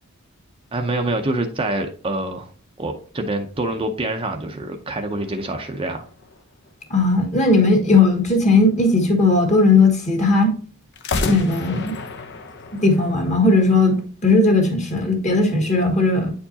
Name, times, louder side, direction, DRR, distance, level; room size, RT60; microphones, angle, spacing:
voice 1, 0.7-2.5 2.8-6.1, right 2 dB, 25° right, 0.6 m, -26 dB
sound 1, 5.1-6.9 10.9-14.0, left 3 dB, 50° left, 0.7 m, -32 dB
voice 2, 6.9-10.5 11.3-11.9 12.8-16.3, left 3 dB, 30° left, 1.6 m, -17 dB
9.2 x 4.5 x 2.8 m
head